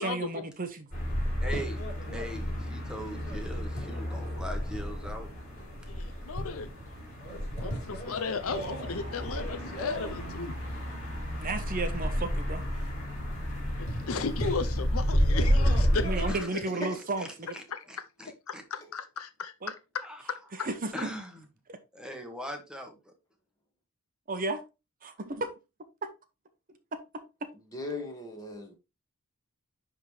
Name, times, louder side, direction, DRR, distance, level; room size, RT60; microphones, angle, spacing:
voice 1, 0.0-0.7 11.4-12.6 16.0-17.6 19.6-19.7 20.6-21.1 21.7-21.8 24.3-24.6 25.0-25.5 26.9-27.5, right 3 dB, 40° right, 0.8 m, -33 dB
sound 1, 0.9-16.3, equal, 35° left, 3.8 m, -31 dB
voice 2, 1.4-1.8 2.1-5.3 16.3-16.5 17.2-17.3 17.5-17.6 17.9-18.6 20.0-20.2 20.9-21.4 21.9-23.1, equal, 5° right, 1.2 m, -40 dB
voice 3, 5.9-6.7 7.6-10.6 13.8-16.9 17.7-17.8 18.2-20.7, left 4 dB, 65° left, 0.7 m, -35 dB
sound 2, 9.9-16.4, left 1 dB, 90° left, 1.5 m, -42 dB
voice 4, 16.5-17.0 27.7-28.7, left 2 dB, 15° left, 1.7 m, -38 dB
10.5 x 3.7 x 3.2 m
head